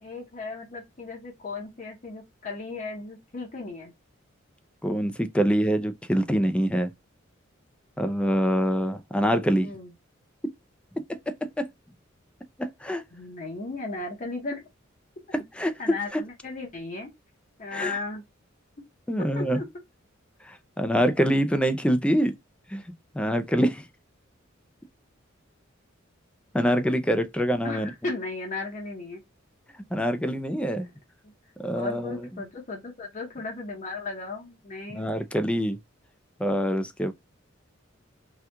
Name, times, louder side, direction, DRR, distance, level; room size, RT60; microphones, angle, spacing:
voice 1, 0.0-3.9 9.6-9.9 13.1-14.6 15.3-15.4 15.8-17.1 17.6-18.2 19.2-19.7 27.6-29.2 30.8-30.9 31.2-31.3 31.7-35.0, left 3 dB, 40° left, 0.8 m, -36 dB
voice 2, 4.8-6.9 8.0-9.7 11.3-11.7 12.6-13.0 15.6-15.7 16.1-16.2 17.7-18.0 19.1-19.6 20.5-22.3 22.7-22.8 23.1-23.8 26.5-27.9 29.9-30.9 31.6-32.2 34.9-35.8 36.4-37.1, equal, 5° left, 0.4 m, -25 dB
2.9 x 2.3 x 3.2 m
head